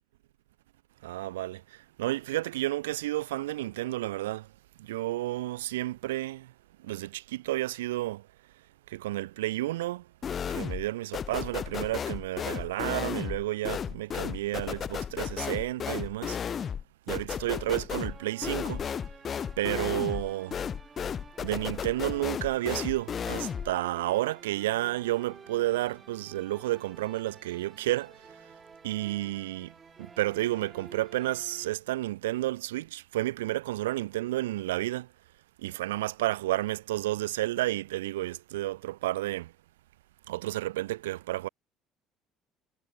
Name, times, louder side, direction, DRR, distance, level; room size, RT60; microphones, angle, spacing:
voice 1, 1.0-4.5 4.8-6.5 6.8-8.3 8.9-10.1 10.5-16.4 17.1-18.8 19.6-20.6 21.4-28.3 28.8-35.1 35.6-39.5 40.3-41.5, right 16 dB, 85° right, 0.3 m, -31 dB
sound 1, 10.2-10.9 11.1-23.7, left 7 dB, 45° left, 0.7 m, -34 dB
sound 2, 17.9-31.7, right 5 dB, 30° right, 1.4 m, -51 dB
hypercardioid pair, 65°, 0 cm